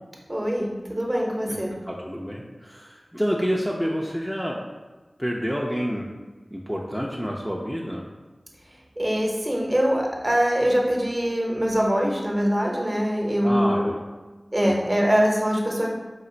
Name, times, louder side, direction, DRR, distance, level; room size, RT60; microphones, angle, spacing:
voice 1, 0.3-1.7 9.0-13.9 14.5-15.9, equal, 30° right, -1 dB, 0.8 m, -23 dB
voice 2, 1.5-4.6 5.2-6.1 6.5-8.1 13.4-14.0 14.6-14.7, equal, ahead, -3 dB, 0.4 m, -28 dB
4.2 x 2.4 x 3.8 m, 1.2 s
wide cardioid pair, 40°, 0 cm